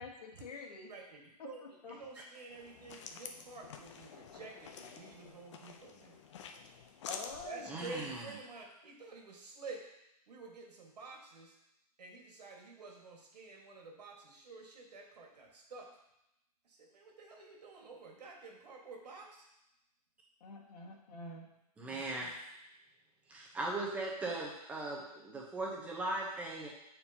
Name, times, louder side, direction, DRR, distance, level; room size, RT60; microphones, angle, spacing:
voice 1, 0.0-0.9 1.4-1.9 7.1-7.8 20.4-21.5, left 3 dB, 75° left, -1 dB, 1.6 m, -47 dB
voice 2, 0.9-1.6 1.9-6.2 7.4-9.8 10.3-11.6 12.0-15.9 16.6-19.5, right 3 dB, 85° right, 0 dB, 1.8 m, -50 dB
sound 1, 2.5-8.2, left 6 dB, 45° left, 0.6 m, -49 dB
voice 3, 7.7-8.3 21.8-22.4 23.3-26.7, right 2 dB, 5° right, -3 dB, 0.8 m, -39 dB
8.4 x 4.4 x 2.8 m, 0.86 s
hypercardioid pair, 165°, 20 cm